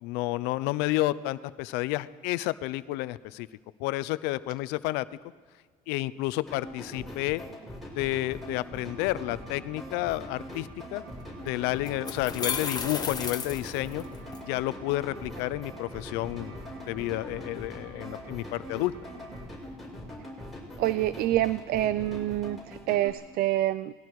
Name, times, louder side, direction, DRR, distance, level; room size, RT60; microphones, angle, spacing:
voice 1, 0.0-3.5 3.8-5.1 5.9-7.4 7.9-11.0 11.4-14.0 14.4-18.9, left 17 dB, 90° left, 16 dB, 0.7 m, -30 dB
sound 1, 6.5-23.1, left 1 dB, ahead, 6.7 m, -42 dB
sound 2, 8.7-19.4, right 4 dB, 85° right, 6.1 m, -50 dB
sound 3, 11.2-11.3 11.9-14.4, left 5 dB, 25° left, 1.6 m, -33 dB
voice 2, 20.8-23.9, right 14 dB, 65° right, 16 dB, 0.5 m, -27 dB
28.5 x 20.0 x 4.8 m, 1.5 s
cardioid pair, 120°, 17 cm